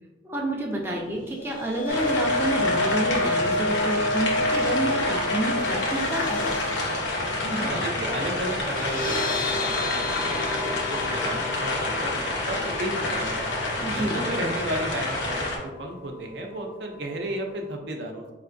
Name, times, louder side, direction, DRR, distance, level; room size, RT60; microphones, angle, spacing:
voice 1, 0.2-6.4 13.8-14.2, right 1 dB, 10° right, -1 dB, 0.4 m, -29 dB
sound 1, 1.2-15.4 15.8-16.0 16.3-16.4, left 1 dB, 50° left, 0.5 m, -31 dB
sound 2, 1.9-15.6, left 2 dB, 90° left, 0.9 m, -28 dB
voice 2, 7.4-13.5 13.9-18.3, right 1 dB, 70° right, 2 dB, 0.6 m, -33 dB
4.5 x 3.2 x 2.5 m, 1.2 s
head